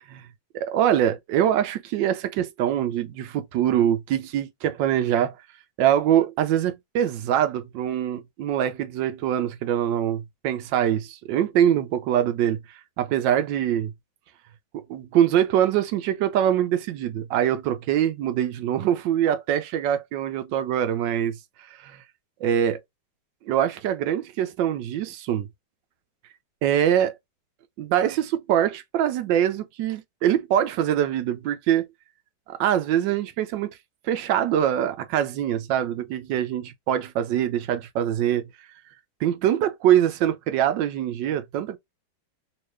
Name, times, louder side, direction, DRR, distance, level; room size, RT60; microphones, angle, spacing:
voice 1, 0.5-5.4 5.8-12.6 13.0-13.9 14.7-21.4 21.8-22.0 22.4-22.8 23.4-25.5 26.6-27.1 27.8-31.9 32.5-33.7 34.0-38.4 39.2-41.8, right 10 dB, 75° right, 1.2 m, -23 dB
3.1 x 2.8 x 3.2 m
omnidirectional pair, 2.2 m